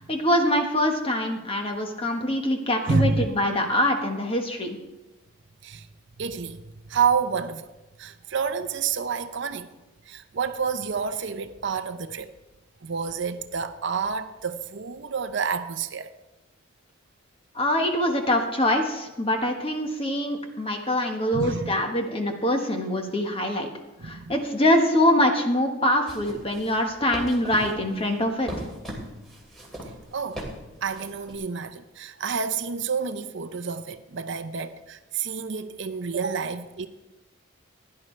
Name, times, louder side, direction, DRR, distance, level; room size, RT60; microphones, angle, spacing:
voice 1, 0.0-4.8 17.5-23.7 24.0-28.5, left 1 dB, 25° left, 1.3 m, -24 dB
voice 2, 2.9-3.3 5.6-5.9 6.2-6.6 6.9-7.7 8.0-9.7 10.1-12.3 12.8-16.1 21.3-21.8 24.0-24.3 30.1-30.4 30.8-36.9, right 5 dB, 55° right, 0.6 m, -29 dB
sound 1, 26.1-31.4, equal, ahead, 2.7 m, -40 dB
16.0 x 10.5 x 3.3 m
head